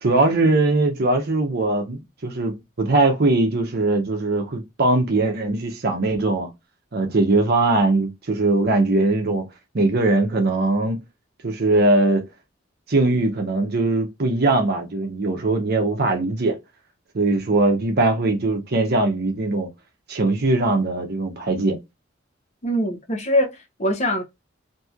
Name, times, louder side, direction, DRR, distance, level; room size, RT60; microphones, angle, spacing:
voice 1, 0.0-6.5 6.9-9.4 9.7-11.0 11.4-12.3 12.9-16.6 17.1-19.7 20.1-21.7, right 2 dB, 55° right, 0.7 m, -20 dB
voice 2, 22.6-24.2, left 1 dB, 35° left, 0.8 m, -23 dB
2.9 x 2.6 x 2.4 m
head